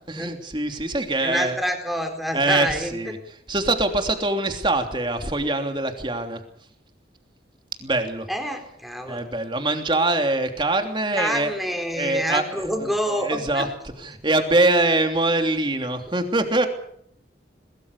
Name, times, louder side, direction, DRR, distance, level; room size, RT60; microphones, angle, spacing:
voice 1, 0.1-1.6 2.3-3.2 3.5-6.4 7.8-8.3 9.0-11.5 11.9-12.4 12.8-12.9 13.2-13.7 14.0-16.7, right 2 dB, 25° right, 5 dB, 3.1 m, -23 dB
voice 2, 1.2-3.1 8.3-9.3 11.1-13.7, equal, ahead, 4 dB, 4.2 m, -27 dB
22.0 x 22.0 x 6.8 m, 0.68 s
head